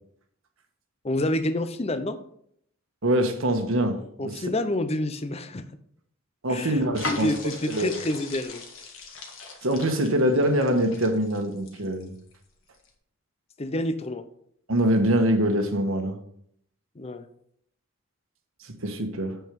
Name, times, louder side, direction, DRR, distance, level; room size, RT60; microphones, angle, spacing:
voice 1, 1.0-2.2 4.2-5.6 6.5-6.8 7.2-8.6 13.6-14.2 17.0-17.2, left 1 dB, 30° left, 11 dB, 0.6 m, -28 dB
voice 2, 3.0-4.0 4.2-4.4 6.4-7.3 7.7-8.0 9.6-12.1 14.7-16.2 18.6-19.4, right 1 dB, 70° right, 6 dB, 1.4 m, -24 dB
sound 1, 6.9-12.3 12.7-12.9, left 3 dB, 70° left, 1.8 m, -38 dB
8.1 x 6.3 x 5.2 m, 0.68 s
head